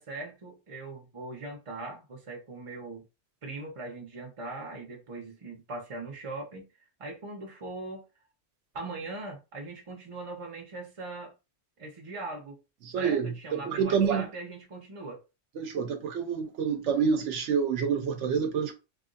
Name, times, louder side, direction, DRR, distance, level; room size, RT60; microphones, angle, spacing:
voice 1, 0.0-3.0 3.4-6.7 7.0-8.0 8.7-11.3 11.8-12.6 13.0-15.2, right 2 dB, 30° right, 0.8 m, -40 dB
voice 2, 12.8-14.3 15.6-18.7, right 6 dB, 90° right, 1.0 m, -28 dB
3.1 x 2.5 x 2.5 m
omnidirectional pair, 1.2 m